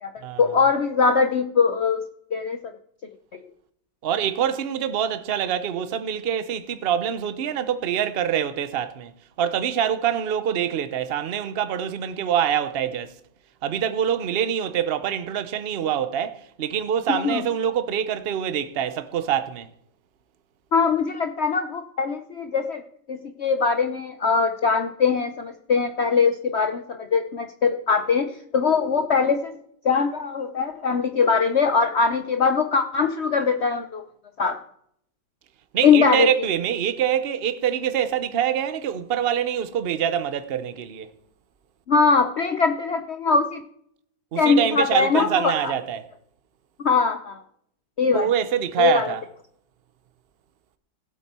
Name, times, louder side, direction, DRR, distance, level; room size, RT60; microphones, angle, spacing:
voice 1, 0.4-2.0 2.3-2.7 3.3-3.4 17.1-17.4 20.7-22.8 23.1-29.6 29.8-34.0 34.4-34.6 35.8-36.3 41.9-43.6 44.4-45.7 46.8-47.4 48.0-48.3 48.8-49.1, left 5 dB, 90° left, 0.5 m, -21 dB
voice 2, 4.0-9.1 9.4-13.1 13.6-19.7 35.7-41.1 44.3-46.1 48.1-49.2, right 9 dB, 55° right, 0.6 m, -25 dB
16.0 x 8.0 x 4.3 m
omnidirectional pair, 2.1 m